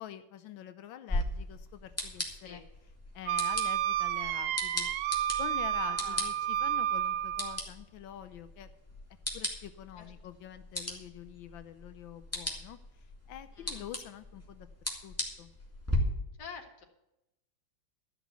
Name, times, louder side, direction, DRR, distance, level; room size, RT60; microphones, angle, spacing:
voice 1, 0.0-2.6 3.1-4.9 5.4-8.7 9.3-12.8 13.3-14.7 15.0-15.5, left 11 dB, 80° left, 11 dB, 1.4 m, -46 dB
sound 1, 1.1-16.0, left 1 dB, 5° left, 2.1 m, -39 dB
Wind instrument woodwind instrument, 3.3-7.6, right 11 dB, 75° right, 1.3 m, -31 dB
voice 2, 5.9-6.3 10.0-10.1 13.5-13.9 16.4-16.8, left 5 dB, 60° left, 2 dB, 2.4 m, -47 dB
13.5 x 6.1 x 8.1 m, 0.89 s
omnidirectional pair, 2.1 m